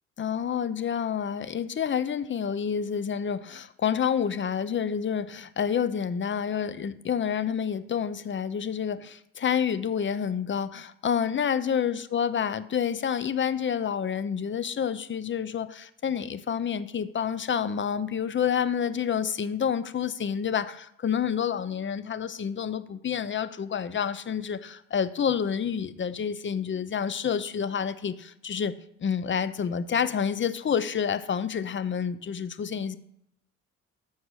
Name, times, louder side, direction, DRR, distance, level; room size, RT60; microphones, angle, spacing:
voice 1, 0.2-28.7 29.0-33.0, left 7 dB, 40° left, 0.8 m, -28 dB
14.0 x 4.7 x 6.4 m
cardioid pair, 90°, 30 cm